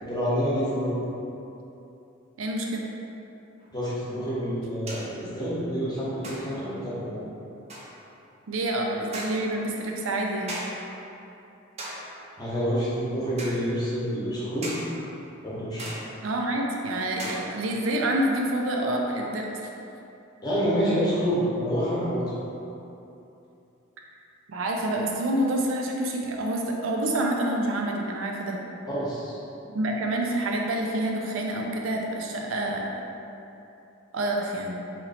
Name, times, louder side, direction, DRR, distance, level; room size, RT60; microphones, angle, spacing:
voice 1, 0.0-1.0 3.7-7.2 12.4-14.7 15.4-15.9 20.4-22.2 28.9-29.4, equal, 20° left, -8 dB, 0.9 m, -27 dB
voice 2, 2.4-2.8 8.5-10.6 16.2-19.6 24.5-28.6 29.7-32.9 34.1-34.8, right 1 dB, 80° right, 0 dB, 0.5 m, -27 dB
sound 1, 3.6-3.7 4.9-5.2 6.2-6.7 7.7-8.0 9.1-9.6 10.5-10.9 11.8-12.2 13.4-13.7 14.6-15.0 15.8-16.3 17.2-17.8, right 1 dB, 35° right, 0.6 m, -38 dB
3.0 x 2.9 x 4.1 m, 2.8 s
head